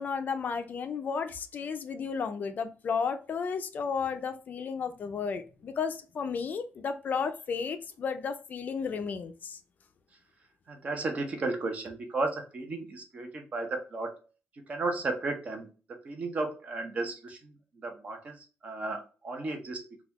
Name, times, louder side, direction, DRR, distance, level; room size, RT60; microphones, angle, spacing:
voice 1, 0.0-9.6, left 5 dB, 45° left, 8 dB, 0.4 m, -33 dB
voice 2, 10.7-14.2 14.7-15.7 16.0-20.0, right 3 dB, 35° right, 4 dB, 0.8 m, -34 dB
4.0 x 2.3 x 2.9 m, 0.34 s
cardioid pair, 155°, 4 cm